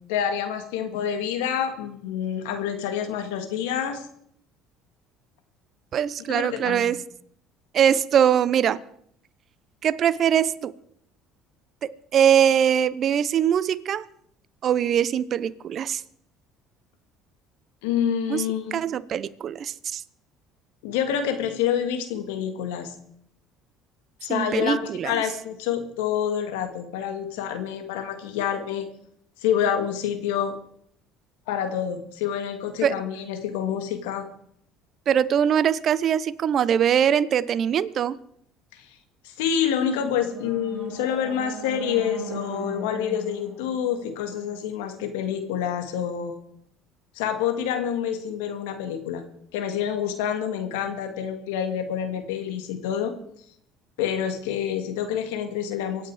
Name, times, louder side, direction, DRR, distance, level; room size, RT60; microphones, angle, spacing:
voice 1, 0.1-4.0 6.3-7.0 17.8-18.8 20.8-22.9 24.2-28.9 29.4-30.5 31.5-34.3 38.7-38.9 39.2-46.4 47.2-49.2 49.5-53.1 54.0-56.1, left 9 dB, 90° left, 2.1 m, -27 dB
voice 2, 5.9-7.0 7.7-8.8 9.8-10.7 11.8-14.1 14.6-16.0 18.3-18.4 18.7-20.0 24.3-25.2 32.8-33.0 35.1-38.2, right 9 dB, 50° right, 0.8 m, -22 dB
sound 1, 39.8-44.9, right 2 dB, 15° right, 7.3 m, -39 dB
24.0 x 8.7 x 4.9 m
supercardioid pair, 90°, 0 cm